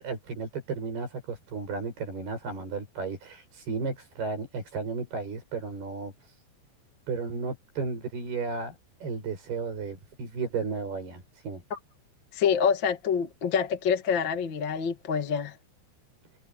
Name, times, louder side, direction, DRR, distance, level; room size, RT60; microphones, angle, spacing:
voice 1, 0.0-6.4 7.1-11.6, right 4 dB, 65° right, 9.4 m, -34 dB
voice 2, 12.3-15.5, left 7 dB, 40° left, 1.8 m, -26 dB
omnidirectional pair, 5.0 m